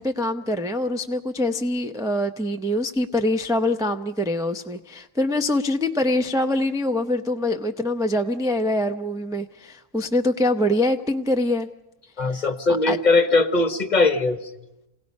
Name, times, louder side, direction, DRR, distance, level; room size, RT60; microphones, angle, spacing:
voice 1, 0.0-11.7 12.9-13.0, left 1 dB, 5° right, 5 dB, 0.4 m, -24 dB
voice 2, 12.2-14.4, left 3 dB, 35° left, 7 dB, 1.1 m, -20 dB
28.0 x 18.0 x 5.3 m, 0.92 s
omnidirectional pair, 1.4 m